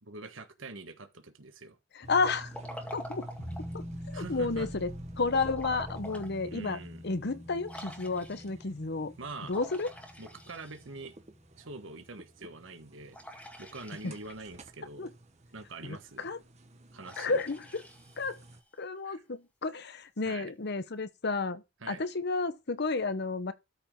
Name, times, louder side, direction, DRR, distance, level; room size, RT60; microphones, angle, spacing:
voice 1, 0.0-1.8 4.1-4.7 6.4-7.0 9.2-9.5 10.2-11.1 11.6-13.2 13.6-15.1 15.5-16.3 16.9-17.4 19.0-19.2 20.2-20.5 21.8-22.0, right 3 dB, 75° right, 1.5 m, -44 dB
voice 2, 2.0-2.5 2.9-3.3 3.7-3.8 4.1-4.9 5.2-6.8 7.0-9.1 9.5-9.9 14.0-14.1 15.0-15.1 15.8-16.4 17.2-17.8 18.2-18.4 18.8-23.5, left 3 dB, 60° left, 0.9 m, -31 dB
sound 1, 2.0-18.6, right 1 dB, 35° right, 1.4 m, -50 dB
Liquid, 2.2-3.8 5.3-6.3 6.8-6.9 7.7-8.6 9.5-11.1 13.1-14.5 17.0-18.7, equal, 5° left, 2.1 m, -47 dB
sound 2, 3.4-12.5 12.8-12.9, equal, 35° left, 3.0 m, -46 dB
13.0 x 5.1 x 3.8 m
head